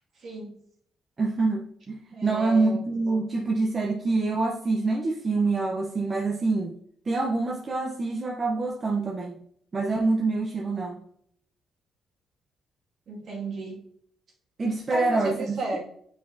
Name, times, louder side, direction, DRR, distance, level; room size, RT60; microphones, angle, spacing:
voice 1, 0.2-0.5 2.1-2.9 13.1-13.8 14.9-15.8, right 2 dB, 60° right, -3 dB, 2.1 m, -34 dB
voice 2, 1.2-6.8 7.1-9.4 9.7-11.0 14.6-15.6, right 3 dB, 35° right, -1 dB, 0.8 m, -26 dB
7.2 x 4.9 x 2.7 m, 0.67 s
cardioid pair, 90°, 0 cm